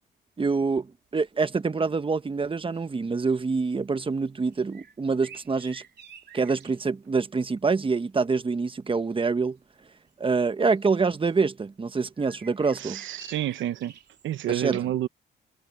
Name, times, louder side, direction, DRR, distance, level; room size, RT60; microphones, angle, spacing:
voice 1, 0.4-5.8 6.3-9.6 10.2-13.0 14.5-14.8, right 4 dB, 25° right, 1.2 m, -26 dB
sound 1, 1.5-1.6 1.9-2.1 2.5-3.2 3.6-3.8 4.5-6.9 9.0-9.1 10.1-10.2 10.8-11.4 12.2-14.3, right 7 dB, 60° right, 3.3 m, -50 dB
voice 2, 12.8-13.9 14.2-15.1, right 13 dB, 75° right, 0.9 m, -29 dB
cardioid pair, 90°, 20 cm